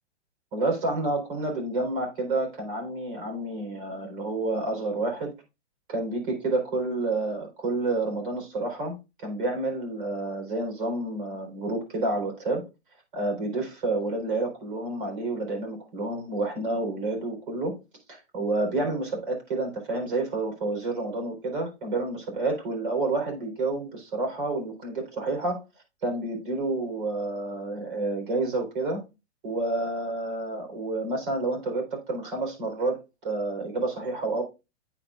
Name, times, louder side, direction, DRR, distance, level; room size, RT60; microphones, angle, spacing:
voice 1, 0.5-5.3 5.9-12.6 13.1-17.7 18.1-25.6 26.0-29.0 29.4-34.4, right 2 dB, 50° right, 2 dB, 4.3 m, -29 dB
8.9 x 8.0 x 2.4 m, 0.27 s
hypercardioid pair, 180°, 35 cm